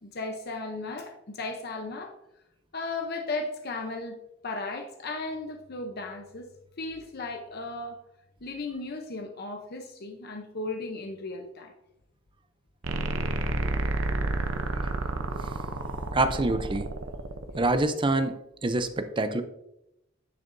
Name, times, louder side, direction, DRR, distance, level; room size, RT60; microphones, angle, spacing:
voice 1, 0.0-2.1 2.7-4.2 4.4-6.5 6.8-8.0 8.4-11.7, left 3 dB, 50° left, 3 dB, 0.8 m, -35 dB
sound 1, 12.8-17.8, right 2 dB, 80° right, 0.7 m, -30 dB
voice 2, 16.1-16.9 17.5-18.4 18.6-19.4, right 2 dB, 25° right, 10 dB, 0.6 m, -25 dB
10.5 x 6.6 x 2.7 m, 0.83 s
head